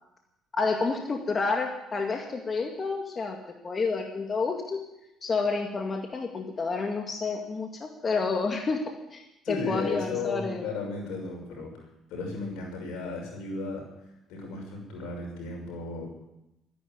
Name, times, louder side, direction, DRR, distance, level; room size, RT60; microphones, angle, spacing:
voice 1, 0.5-3.4 3.6-4.8 5.2-8.8 9.1-9.2 9.5-10.7, left 4 dB, 35° left, 2 dB, 2.2 m, -29 dB
voice 2, 9.4-11.8 12.1-13.8 14.3-16.1, left 3 dB, 85° left, 1 dB, 6.3 m, -34 dB
13.5 x 11.0 x 9.6 m, 0.89 s
supercardioid pair, 85°, 0 cm